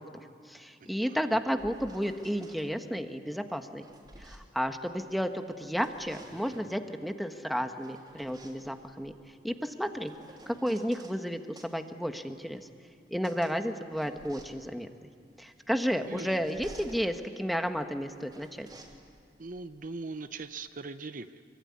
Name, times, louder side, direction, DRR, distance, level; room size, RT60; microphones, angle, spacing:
voice 1, 0.0-3.9 4.2-9.1 9.4-10.1 10.5-12.7 13.1-15.1 15.4-18.7, equal, ahead, 6 dB, 1.3 m, -32 dB
voice 2, 0.8-1.2 16.0-16.3 19.4-21.4, right 3 dB, 50° right, 10 dB, 0.8 m, -40 dB
sound 1, 1.5-2.7 3.5-5.3 5.6-6.8 7.5-11.2 11.6-20.6, right 1 dB, 25° right, 3.4 m, -54 dB
25.5 x 24.0 x 9.7 m, 2.2 s
head